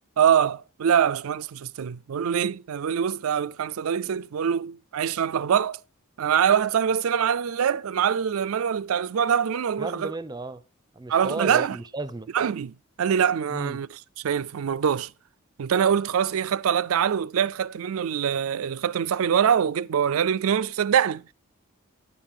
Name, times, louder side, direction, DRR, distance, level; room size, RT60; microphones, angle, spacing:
voice 1, 0.2-5.8 6.2-10.1 11.1-11.8 12.3-13.9 14.2-15.1 15.6-21.3, right 8 dB, 75° right, 0.4 m, -24 dB
voice 2, 9.8-10.6 10.9-12.3 13.5-13.8, right 2 dB, 20° right, 0.5 m, -34 dB
10.5 x 8.9 x 3.7 m
head